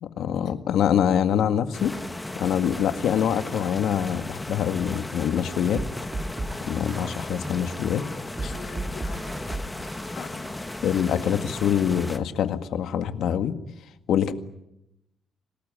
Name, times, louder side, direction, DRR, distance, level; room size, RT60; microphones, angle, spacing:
voice 1, 0.0-1.9 2.4-5.8 6.6-8.0 10.8-13.6 14.1-14.3, left 9 dB, 70° left, 9 dB, 1.9 m, -24 dB
sound 1, 1.7-12.2, left 2 dB, 10° left, 1.5 m, -36 dB
sound 2, 5.8-11.7, right 2 dB, 25° right, 3.2 m, -37 dB
voice 2, 7.9-10.5 10.8-11.2, left 6 dB, 55° left, 4 dB, 2.9 m, -44 dB
26.5 x 19.5 x 10.0 m, 0.88 s
cardioid pair, 145°, 0 cm